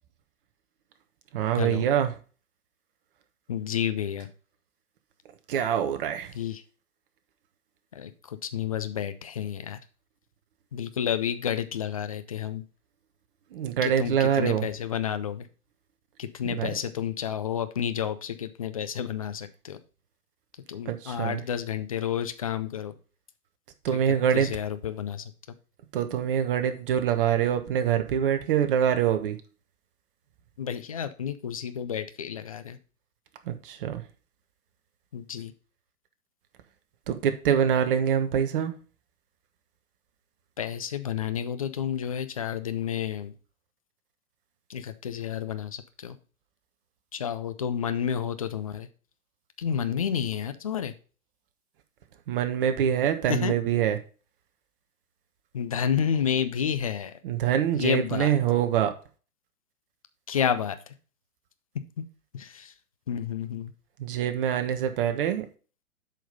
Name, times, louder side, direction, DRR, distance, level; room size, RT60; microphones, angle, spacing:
voice 1, 1.3-2.1 5.5-6.3 13.5-14.6 16.4-16.7 20.9-21.4 23.8-24.5 25.9-29.4 33.5-34.0 37.1-38.7 52.3-54.0 57.2-58.9 64.0-65.4, right 9 dB, 35° right, 1.2 m, -25 dB
voice 2, 3.5-4.3 6.3-6.6 7.9-9.8 10.7-12.6 13.8-15.5 16.2-19.8 20.7-22.9 24.1-25.3 30.6-32.8 35.1-35.5 40.6-43.3 44.7-46.2 47.1-48.9 49.6-50.9 53.3-53.5 55.5-57.2 57.7-58.3 60.3-60.9 62.3-62.7 63.1-63.7, left 8 dB, 25° left, 0.4 m, -30 dB
7.7 x 5.3 x 5.3 m
figure-of-eight pair, 120°, 45 cm